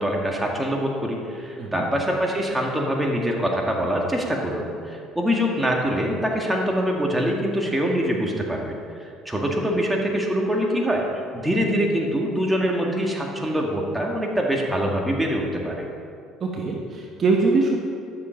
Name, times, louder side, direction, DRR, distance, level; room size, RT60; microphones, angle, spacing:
voice 1, 0.0-8.6 9.0-11.0 11.3-15.8, equal, 10° right, -1 dB, 2.0 m, -24 dB
voice 2, 16.4-17.8, right 3 dB, 40° right, 0 dB, 1.4 m, -22 dB
12.0 x 7.1 x 5.2 m, 2.4 s
supercardioid pair, 80°, 0 cm